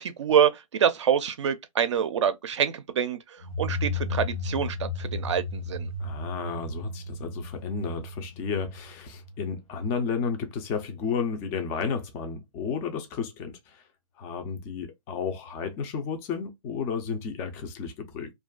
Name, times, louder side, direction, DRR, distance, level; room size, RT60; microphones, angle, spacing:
voice 1, 0.0-3.2 3.6-5.9, right 8 dB, 60° right, 0.5 m, -26 dB
sound 1, 3.4-10.0, left 3 dB, 85° left, 1.0 m, -34 dB
voice 2, 6.0-13.8 14.2-18.3, left 5 dB, 15° left, 0.3 m, -32 dB
2.4 x 2.3 x 2.2 m
hypercardioid pair, 150°, 18 cm